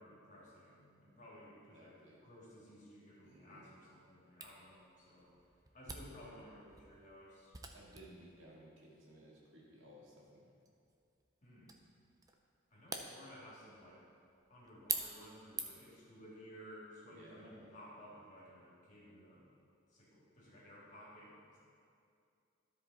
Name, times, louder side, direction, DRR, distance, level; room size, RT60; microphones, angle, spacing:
voice 1, 0.0-5.3 5.7-7.5 11.4-11.8 12.7-14.0 14.5-19.5 19.9-21.6, equal, 35° left, -6 dB, 2.4 m, -56 dB
voice 2, 1.7-2.2 3.2-3.7 7.7-10.5 17.1-17.7, equal, 65° right, -5 dB, 2.1 m, -58 dB
Camera, 4.4-16.0, right 5 dB, 15° right, 0.5 m, -48 dB
13.0 x 5.0 x 4.2 m, 2.4 s
head